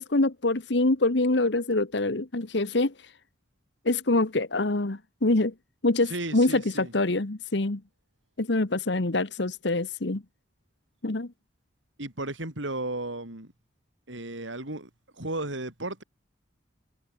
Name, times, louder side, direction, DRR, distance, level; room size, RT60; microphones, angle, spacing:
voice 1, 0.0-3.1 3.8-5.5 5.8-7.8 8.4-10.2 11.0-11.3, left 2 dB, 65° left, 1.3 m, -25 dB
voice 2, 6.1-6.9 12.0-13.5 14.1-14.9 15.2-16.0, right 2 dB, 85° right, 5.8 m, -34 dB
head